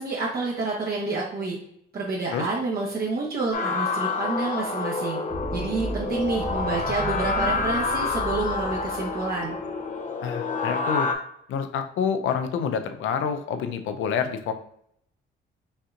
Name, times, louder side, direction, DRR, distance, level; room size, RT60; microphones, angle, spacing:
voice 1, 0.0-1.6 1.9-5.2 5.5-9.6, right 3 dB, 50° right, -4 dB, 1.1 m, -28 dB
sound 1, 3.5-11.2, left 4 dB, 40° left, 0.7 m, -28 dB
sound 2, 5.3-9.6, right 1 dB, 25° right, 0.9 m, -35 dB
voice 2, 10.2-11.1 11.5-14.5, left 7 dB, 80° left, 8 dB, 0.6 m, -27 dB
5.4 x 2.9 x 2.4 m, 0.71 s
cardioid pair, 90°, 20 cm